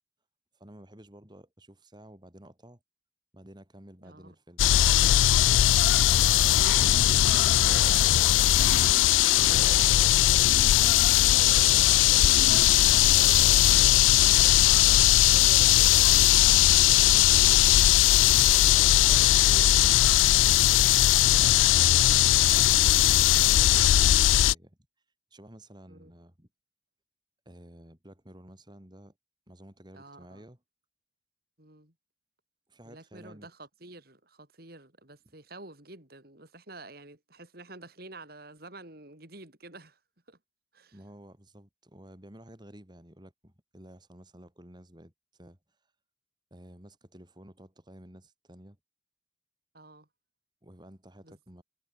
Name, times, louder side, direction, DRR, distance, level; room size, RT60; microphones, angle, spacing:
voice 1, 0.5-2.8 3.3-4.7 21.4-24.8 25.3-26.5 27.5-29.1 29.5-30.6 32.7-33.5 40.9-45.9 46.5-48.8 50.6-51.6, equal, 25° right, 4.2 m, -51 dB
voice 2, 4.0-4.4 6.1-18.0 18.6-20.2 25.9-26.1 29.9-30.5 31.6-31.9 32.9-40.0 40.3-40.4 40.7-41.0 49.7-50.1 51.2-51.4, right 2 dB, 55° right, 5.5 m, -48 dB
sound 1, 4.6-24.5, left 14 dB, 90° left, 0.3 m, -20 dB
sound 2, 6.6-14.0, right 2 dB, 70° right, 1.1 m, -42 dB
head